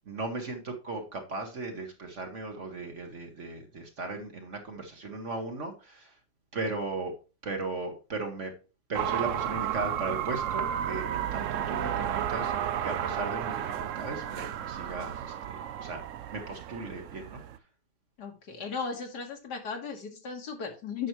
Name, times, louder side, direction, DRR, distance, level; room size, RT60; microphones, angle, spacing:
voice 1, 0.1-6.1 6.5-7.1 7.4-8.5 8.9-16.0 16.3-17.4, right 3 dB, 45° right, 4 dB, 1.4 m, -37 dB
sound 1, 8.9-17.6, right 10 dB, 80° right, 0.7 m, -33 dB
voice 2, 18.2-21.1, left 5 dB, 65° left, 3 dB, 2.0 m, -36 dB
9.0 x 5.9 x 3.0 m, 0.32 s
omnidirectional pair, 1.9 m